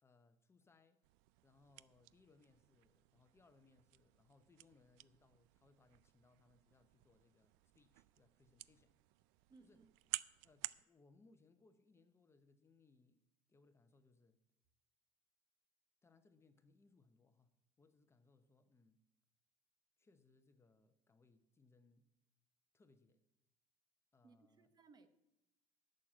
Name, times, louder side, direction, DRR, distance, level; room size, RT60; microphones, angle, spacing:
voice 1, 0.0-1.0 1.4-8.9 9.6-9.8 10.4-13.2 13.5-14.4 16.0-17.5 17.8-19.0 20.0-22.1 22.7-23.2 24.1-24.7, left 3 dB, 15° left, 8 dB, 0.8 m, -71 dB
sound 1, 1.0-10.8, right 19 dB, 85° right, 0.4 m, -53 dB
voice 2, 9.5-9.9 24.2-25.1, right 4 dB, 25° right, 11 dB, 0.8 m, -65 dB
11.0 x 6.5 x 8.9 m, 0.91 s
cardioid pair, 140°, 16 cm